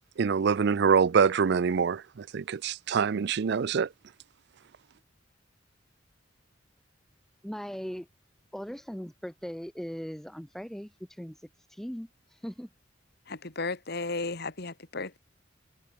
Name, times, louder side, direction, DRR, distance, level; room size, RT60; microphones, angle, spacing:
voice 1, 0.2-3.9, right 6 dB, 60° right, 0.4 m, -25 dB
voice 2, 7.4-8.1 8.5-11.4 11.7-12.1 12.4-12.7, equal, ahead, 0.7 m, -39 dB
voice 3, 13.3-15.2, left 3 dB, 60° left, 2.2 m, -34 dB
head